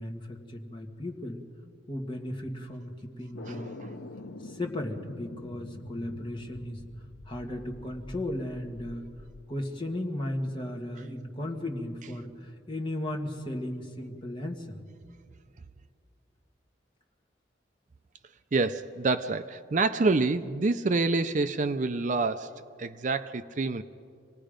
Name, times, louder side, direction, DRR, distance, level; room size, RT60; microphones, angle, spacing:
voice 1, 0.0-1.4 1.9-3.8 4.4-6.8 7.3-9.0 9.5-14.8, left 1 dB, 25° left, 1 dB, 1.6 m, -35 dB
sound 1, 3.3-9.4, left 2 dB, 85° left, 0.8 m, -45 dB
voice 2, 18.5-23.8, right 3 dB, 40° right, 11 dB, 0.5 m, -27 dB
27.0 x 18.5 x 5.1 m, 2.3 s
head